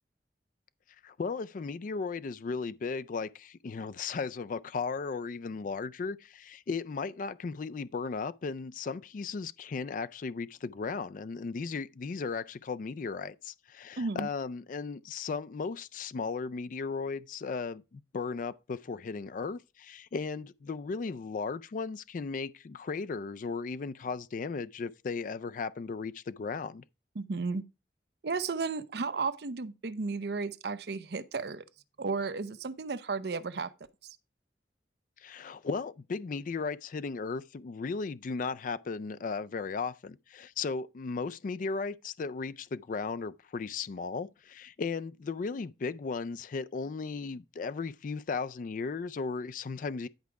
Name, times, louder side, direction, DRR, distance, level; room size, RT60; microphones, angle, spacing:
voice 1, 1.0-26.8 35.2-50.1, left 4 dB, 50° left, 0.4 m, -36 dB
voice 2, 14.0-14.3 27.2-27.6 28.2-31.6 32.0-33.7, right 4 dB, 65° right, 0.6 m, -33 dB
10.5 x 4.8 x 4.6 m
head